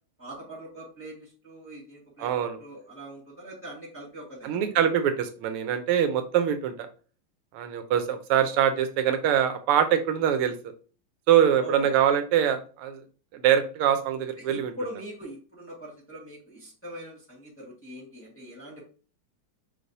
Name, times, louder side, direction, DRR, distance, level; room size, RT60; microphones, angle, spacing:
voice 1, 0.2-2.3 2.6-4.7 11.6-11.9 14.4-18.8, equal, 5° left, -5 dB, 1.3 m, -42 dB
voice 2, 2.2-2.6 4.4-6.9 7.5-10.5 11.3-13.0 13.3-14.7, right 9 dB, 90° right, 9 dB, 1.6 m, -24 dB
5.4 x 3.3 x 2.6 m, 0.37 s
omnidirectional pair, 2.4 m